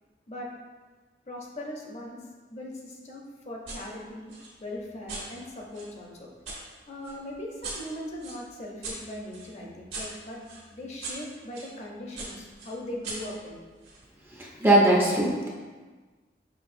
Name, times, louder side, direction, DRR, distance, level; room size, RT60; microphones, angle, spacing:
voice 1, 1.3-2.2 2.5-4.3 4.6-6.3 6.9-13.6, left 1 dB, 40° left, -1 dB, 0.7 m, -39 dB
sound 1, 3.7-3.8 4.3-6.6 7.0-11.7 12.2-14.0, right 3 dB, 70° right, 1.5 m, -41 dB
voice 2, 14.4-15.5, right 1 dB, 15° right, -3 dB, 0.5 m, -21 dB
6.0 x 3.3 x 2.6 m, 1.4 s
head